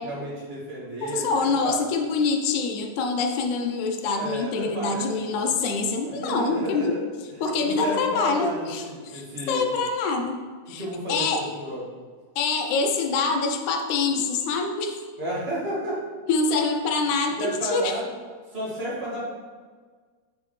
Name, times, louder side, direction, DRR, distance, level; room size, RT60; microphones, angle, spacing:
voice 1, 0.0-1.8 4.1-5.5 6.0-7.0 7.6-9.7 10.8-11.8 15.2-16.0 17.4-18.1 18.5-19.2, right 1 dB, 25° right, -8 dB, 1.9 m, -32 dB
voice 2, 1.0-6.9 7.4-10.4 10.7-11.5 12.4-15.0 16.3-18.0, left 4 dB, 85° left, 4 dB, 2.1 m, -25 dB
8.5 x 5.4 x 3.2 m, 1.5 s
omnidirectional pair, 3.4 m